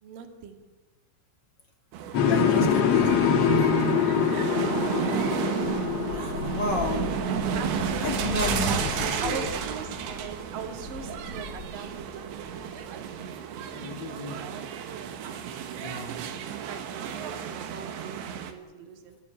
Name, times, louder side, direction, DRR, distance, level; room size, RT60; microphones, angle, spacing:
voice 1, 0.0-0.6 4.2-4.6 7.5-8.8 9.2-12.7 13.6-14.7 15.2-19.2, right 6 dB, 55° right, 5 dB, 3.6 m, -41 dB
sound 1, 1.9-18.5, right 8 dB, 90° right, 3.8 m, -33 dB
sound 2, 2.1-8.1, left 6 dB, 55° left, 2.0 m, -25 dB
voice 2, 2.2-3.5 6.1-7.2 8.0-9.5 13.7-14.4 15.7-16.2, left 2 dB, 30° left, 2 dB, 2.5 m, -32 dB
sound 3, 4.9-13.2, left 5 dB, 75° left, 3.6 m, -38 dB
29.0 x 15.0 x 8.9 m, 1.2 s
omnidirectional pair, 5.0 m